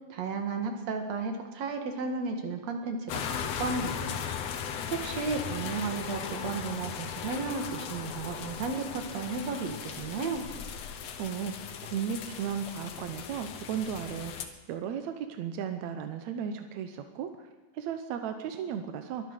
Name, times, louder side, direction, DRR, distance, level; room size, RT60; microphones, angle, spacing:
voice 1, 0.1-4.2 4.9-10.4, right 4 dB, 55° right, 5 dB, 2.5 m, -34 dB
sound 1, 3.1-14.5, left 8 dB, 65° left, 1.7 m, -38 dB
voice 2, 11.2-17.5 17.7-19.3, right 8 dB, 75° right, 7 dB, 1.7 m, -35 dB
22.5 x 9.3 x 6.5 m, 1.2 s
omnidirectional pair, 4.2 m